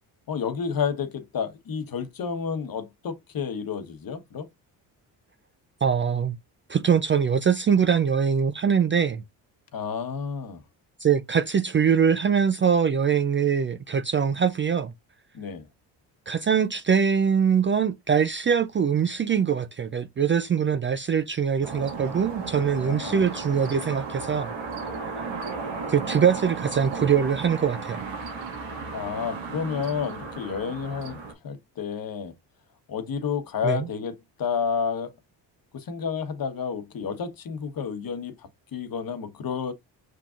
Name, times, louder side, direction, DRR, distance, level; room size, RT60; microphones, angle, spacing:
voice 1, 0.3-4.5 9.7-10.6 15.3-15.6 22.8-23.3 28.9-32.4 32.9-35.1 35.7-39.7, left 6 dB, 50° left, 1.1 m, -30 dB
voice 2, 5.8-6.4 6.7-9.2 11.0-14.9 16.3-24.5 25.9-28.1 33.6-33.9, right 7 dB, 30° right, 0.4 m, -23 dB
sound 1, 21.6-31.3, right 4 dB, 90° right, 1.8 m, -35 dB
5.7 x 3.7 x 2.4 m
supercardioid pair, 70°, 45 cm